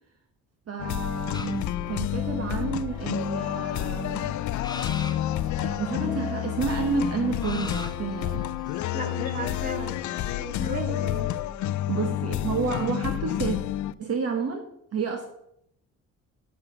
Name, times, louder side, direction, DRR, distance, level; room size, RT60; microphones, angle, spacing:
voice 1, 0.7-4.4 5.6-8.5 11.9-13.6 14.0-15.3, right 5 dB, 55° right, 4 dB, 1.4 m, -30 dB
sound 1, 0.8-13.9, left 13 dB, 75° left, 0.5 m, -29 dB
sound 2, 1.3-2.2 2.8-2.9 3.2-3.8 4.6-5.3 5.8-5.9 7.4-9.3, left 3 dB, 15° left, 0.8 m, -40 dB
sound 3, 2.1-11.1, right 6 dB, 85° right, 1.9 m, -46 dB
voice 2, 8.9-9.9 10.4-11.3, right 2 dB, 30° right, 5 dB, 2.0 m, -35 dB
8.4 x 7.1 x 6.6 m, 0.74 s
cardioid pair, 90°, 30 cm